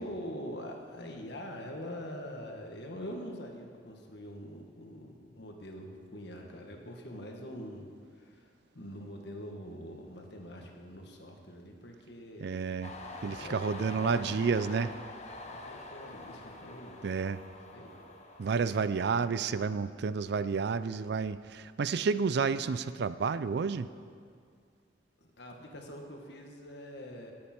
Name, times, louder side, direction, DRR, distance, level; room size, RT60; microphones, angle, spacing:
voice 1, 0.0-8.5 8.7-12.6 13.3-14.4 14.7-14.9 15.5-17.2 17.7-18.0 18.6-18.7 25.2-27.3, equal, 65° left, 2 dB, 1.6 m, -44 dB
voice 2, 12.4-12.9 13.2-14.9 17.0-17.4 18.4-23.9, right 5 dB, 65° right, 14 dB, 0.4 m, -30 dB
Train, 12.8-20.2 20.6-21.4, left 2 dB, 40° left, 1.1 m, -47 dB
18.0 x 8.5 x 4.4 m, 2.2 s
head